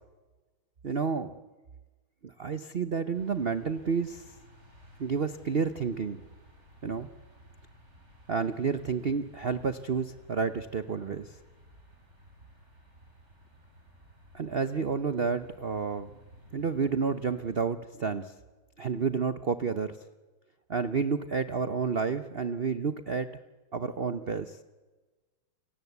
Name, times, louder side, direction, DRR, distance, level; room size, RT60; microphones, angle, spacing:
voice 1, 0.8-1.3 2.2-4.2 5.0-6.2 6.8-7.1 8.3-11.3 14.3-16.1 16.5-18.3 18.8-20.0 20.7-23.3 23.7-24.6, right 5 dB, 75° right, 11 dB, 0.5 m, -30 dB
sound 1, 3.1-17.6, equal, 30° right, 5.2 m, -56 dB
29.0 x 18.0 x 8.1 m, 1.3 s
omnidirectional pair, 2.3 m